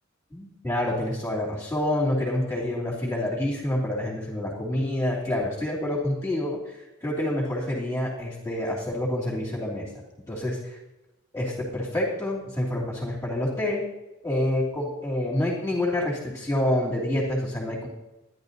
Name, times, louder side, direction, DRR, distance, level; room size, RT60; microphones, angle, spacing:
voice 1, 0.3-9.9 10.3-10.8 11.3-13.8 14.2-17.9, left 1 dB, 15° left, -5 dB, 3.0 m, -27 dB
13.0 x 11.0 x 4.0 m, 1.0 s
head